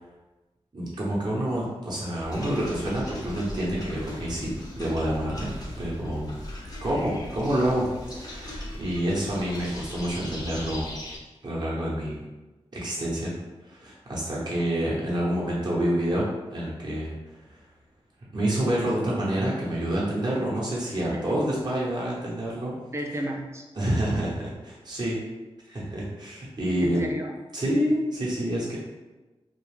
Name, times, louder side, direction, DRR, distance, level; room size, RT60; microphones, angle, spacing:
voice 1, 0.7-5.5 5.8-6.3 6.8-7.9 8.1-10.9 11.4-12.2 12.7-13.3 13.6-17.6 18.3-22.7 23.8-25.2 25.7-27.0 27.5-28.8, right 1 dB, 40° right, -6 dB, 0.8 m, -28 dB
sound 1, 2.2-11.2, left 1 dB, 35° left, 0.7 m, -39 dB
voice 2, 22.9-23.6 26.8-27.3, right 1 dB, 25° right, 2 dB, 0.5 m, -32 dB
2.4 x 2.2 x 3.2 m, 1.1 s
cardioid pair, 50°, 11 cm